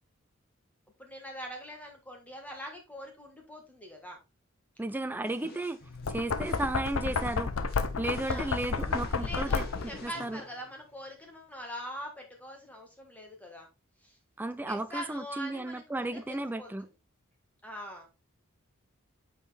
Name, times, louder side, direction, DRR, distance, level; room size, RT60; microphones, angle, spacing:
voice 1, 1.0-4.2 8.3-8.5 9.2-13.7 14.0-14.2 14.7-16.7 17.6-18.1, equal, 5° left, 1.5 m, -43 dB
voice 2, 4.8-5.8 6.1-7.7 8.0-10.4 14.4-16.9, right 2 dB, 10° right, 0.3 m, -34 dB
sound 1, 5.3-11.1, left 1 dB, 45° left, 1.7 m, -49 dB
Knock, 5.9-10.0, left 4 dB, 70° left, 0.7 m, -31 dB
8.2 x 4.4 x 3.4 m
head